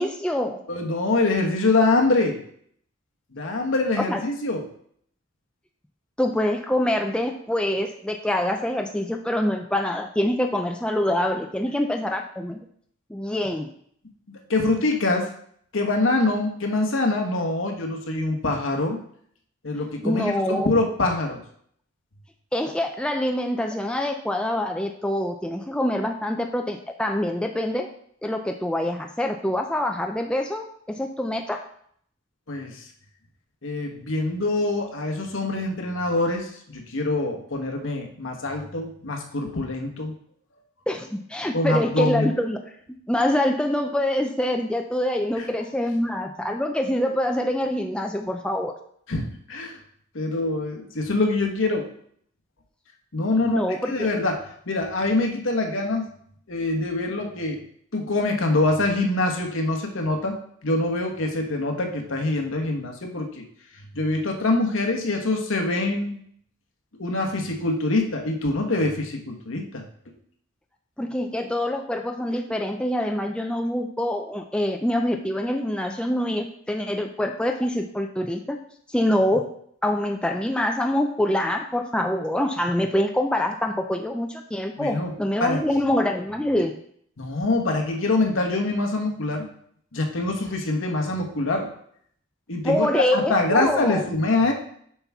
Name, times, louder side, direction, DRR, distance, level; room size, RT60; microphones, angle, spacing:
voice 1, 0.0-0.6 4.1-4.2 6.2-12.6 13.1-13.7 20.0-20.7 22.5-27.9 28.2-31.6 40.9-42.7 43.1-48.7 53.4-54.1 71.0-78.6 78.9-79.4 79.8-86.7 92.6-94.0, left 1 dB, 5° left, 3 dB, 0.3 m, -25 dB
voice 2, 0.7-2.4 3.3-4.7 14.3-15.3 15.7-19.0 19.6-21.4 32.5-32.9 33.6-40.1 41.5-42.3 45.4-45.5 49.1-49.8 50.1-51.9 53.1-56.0 56.5-57.6 57.9-60.3 60.6-63.4 63.9-66.2 67.0-69.8 84.8-85.1 85.4-85.6 87.2-89.5 89.9-91.7 92.5-94.5, left 2 dB, 70° left, 2 dB, 1.2 m, -24 dB
7.9 x 5.7 x 3.5 m, 0.65 s
head